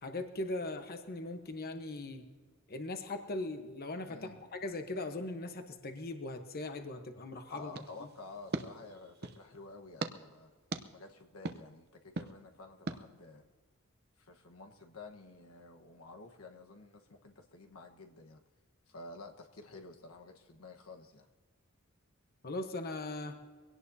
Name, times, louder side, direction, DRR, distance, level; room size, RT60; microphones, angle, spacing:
voice 1, 0.0-2.2 2.7-4.2 4.5-7.8 22.4-23.4, left 2 dB, 45° left, 6 dB, 1.1 m, -39 dB
voice 2, 4.1-4.5 7.5-10.5 10.9-13.4 14.2-18.4 18.9-21.3, left 3 dB, 80° left, 3 dB, 1.3 m, -51 dB
sound 1, 7.7-9.5 10.0-10.1 10.7-10.8 11.5-11.6 12.2-12.3 12.9-13.0, right 3 dB, 50° right, 0.8 m, -39 dB
23.0 x 17.5 x 2.8 m, 1.5 s
head